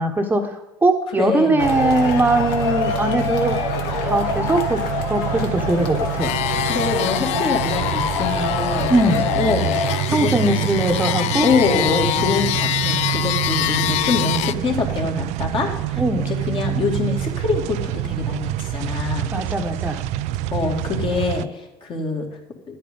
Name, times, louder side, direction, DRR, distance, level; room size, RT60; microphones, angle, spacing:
voice 1, 0.0-3.6 4.0-6.3 8.9-9.3 10.1-11.5 12.2-12.3 16.0-16.3 19.3-20.0, right 1 dB, 15° right, 4 dB, 1.1 m, -20 dB
voice 2, 1.1-1.6 6.7-8.9 9.4-9.7 10.1-10.6 11.4-19.3 20.5-22.3, left 4 dB, 40° left, 1 dB, 2.5 m, -24 dB
Male speech man speaking / Shout / Clapping, 1.6-10.0, left 6 dB, 75° left, 1.4 m, -26 dB
sound 1, 1.6-21.4, right 13 dB, 60° right, 0.4 m, -27 dB
sound 2, 6.2-14.5, left 14 dB, 60° left, 0.4 m, -25 dB
11.0 x 8.5 x 5.4 m, 0.94 s
hypercardioid pair, 85°, 13 cm